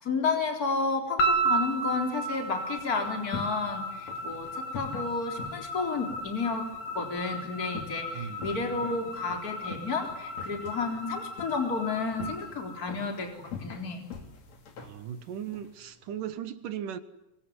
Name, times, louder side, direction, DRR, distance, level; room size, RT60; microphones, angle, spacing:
voice 1, 0.0-6.7 6.9-14.0, left 4 dB, 25° left, 4 dB, 4.1 m, -31 dB
sound 1, 1.2-13.5, right 2 dB, 80° left, 4.6 m, -34 dB
sound 2, 2.9-16.4, left 5 dB, 55° left, 4.0 m, -45 dB
voice 2, 14.8-17.0, right 9 dB, 75° right, 12 dB, 2.9 m, -37 dB
24.5 x 24.0 x 9.7 m, 0.88 s
omnidirectional pair, 3.9 m